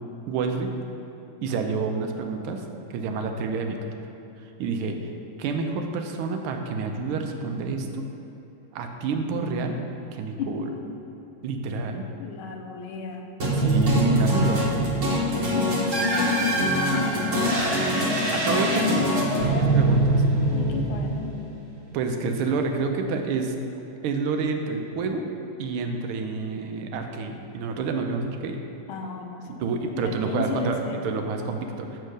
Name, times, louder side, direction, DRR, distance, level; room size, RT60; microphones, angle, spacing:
voice 1, 0.3-0.7 1.4-2.6 2.9-3.8 4.6-5.0 5.4-8.0 8.7-9.8 10.1-10.7 11.4-12.1 13.4-14.7 18.3-19.0 19.5-20.2 21.9-23.5 24.0-25.2 25.6-28.6 29.5-32.0, right 4 dB, 85° right, 4 dB, 1.5 m, -28 dB
voice 2, 10.4-10.8 12.2-13.3 15.5-17.6 18.7-19.8 20.5-21.3 28.9-29.7 29.9-31.0, left 5 dB, 85° left, 3 dB, 1.5 m, -32 dB
sound 1, 13.4-21.6, right 1 dB, 45° right, 1.4 m, -23 dB
7.0 x 4.5 x 6.4 m, 2.8 s
omnidirectional pair, 2.3 m